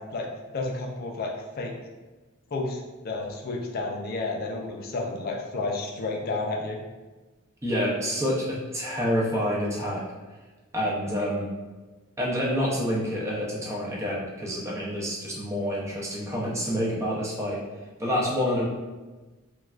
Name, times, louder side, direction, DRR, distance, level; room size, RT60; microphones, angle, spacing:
voice 1, 0.0-1.7 2.5-6.8, left 3 dB, 45° left, 0 dB, 0.4 m, -31 dB
voice 2, 7.6-10.0 10.7-11.5 12.2-17.6 18.0-18.6, equal, 15° right, -5 dB, 0.5 m, -27 dB
3.1 x 2.3 x 2.3 m, 1.2 s
head